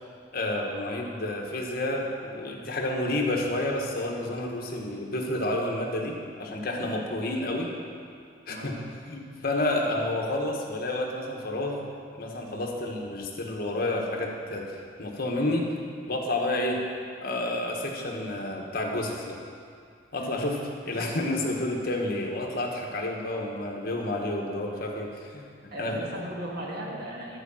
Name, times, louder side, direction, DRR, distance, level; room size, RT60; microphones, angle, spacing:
voice 1, 0.3-7.7 8.5-8.8 9.1-11.8 12.2-15.7 16.1-16.8 17.2-19.4 20.1-20.6 20.8-25.5 25.8-26.1, left 1 dB, 55° left, 0 dB, 1.3 m, -30 dB
voice 2, 25.7-27.4, right 1 dB, 60° right, -2 dB, 1.8 m, -38 dB
11.5 x 4.8 x 7.1 m, 2.3 s
head